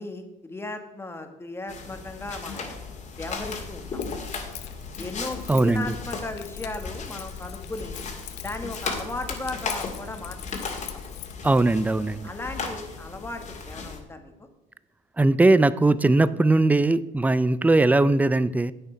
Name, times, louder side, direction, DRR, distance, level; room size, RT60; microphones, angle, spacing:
voice 1, 0.0-2.7 3.2-4.0 5.0-8.0 8.4-10.9 12.2-14.3, left 2 dB, 15° left, 6 dB, 1.4 m, -36 dB
sound 1, 1.7-14.0, left 4 dB, 45° left, 2.1 m, -36 dB
Keys jangling, 3.4-11.3, left 9 dB, 80° left, 0.8 m, -41 dB
voice 2, 5.5-5.9 11.4-12.3 15.2-18.7, right 2 dB, 10° right, 17 dB, 0.4 m, -20 dB
10.0 x 8.7 x 4.5 m, 0.96 s
cardioid pair, 110°, 17 cm